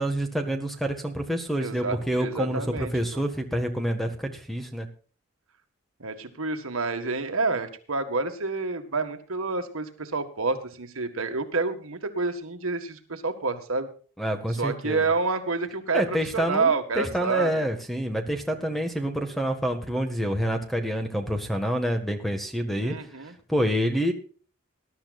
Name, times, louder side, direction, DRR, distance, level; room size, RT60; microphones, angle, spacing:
voice 1, 0.0-4.9 14.2-15.0 15.9-22.9 23.5-24.1, equal, ahead, 6 dB, 1.7 m, -27 dB
voice 2, 1.6-3.2 6.0-13.9 14.6-17.7 22.8-23.4, right 3 dB, 75° right, 7 dB, 1.7 m, -28 dB
20.5 x 12.0 x 2.5 m, 0.41 s
head